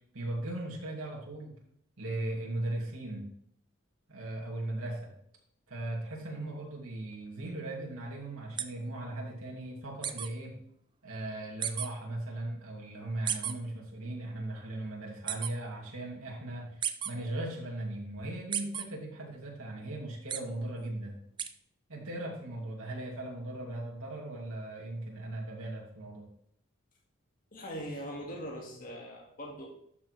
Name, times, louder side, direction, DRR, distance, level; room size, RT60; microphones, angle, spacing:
voice 1, 0.1-1.5 2.0-3.3 4.1-5.1 5.7-10.5 11.0-21.2 21.9-26.3, right 1 dB, 85° right, -2 dB, 2.6 m, -38 dB
sound 1, 8.6-8.7 10.0-10.3 11.6-11.9 13.3-13.5 15.3-15.5 16.8-17.1 18.5-18.8 20.3-20.4 21.4-21.5, right 9 dB, 20° right, 0.4 m, -32 dB
voice 2, 27.5-29.7, equal, 40° left, -1 dB, 1.9 m, -41 dB
12.0 x 6.3 x 3.3 m, 0.68 s
head